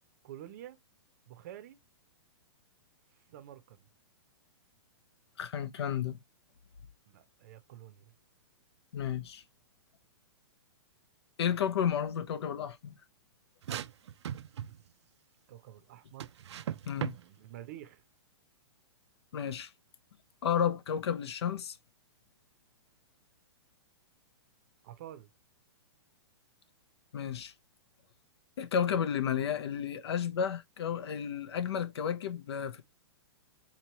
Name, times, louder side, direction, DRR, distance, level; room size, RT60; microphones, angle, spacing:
voice 1, 0.2-0.8 1.3-1.8 3.3-3.8 7.1-8.1 15.5-16.3 17.0-18.0 24.8-25.3, right 12 dB, 35° right, 0.6 m, -49 dB
voice 2, 5.4-6.2 8.9-9.4 11.4-12.9 16.9-17.1 19.3-19.7 20.4-21.8 27.1-27.5 28.6-32.8, left 8 dB, 70° left, 0.7 m, -32 dB
sound 1, 13.6-14.9 16.2-17.2, right 10 dB, 80° right, 0.4 m, -37 dB
4.2 x 3.0 x 2.9 m
hypercardioid pair, 165°, 14 cm